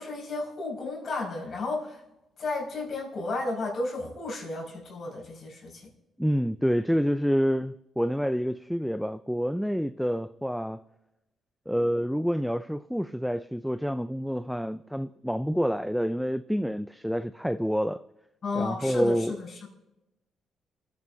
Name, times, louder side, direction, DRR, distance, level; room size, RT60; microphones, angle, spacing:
voice 1, 0.0-2.0 2.4-5.8 18.4-19.7, left 2 dB, 55° left, 5.0 m, -33 dB
voice 2, 6.2-10.8 11.7-18.0 18.6-19.4, equal, ahead, 0.3 m, -28 dB
28.5 x 9.5 x 2.7 m
cardioid pair, 90°, 0 cm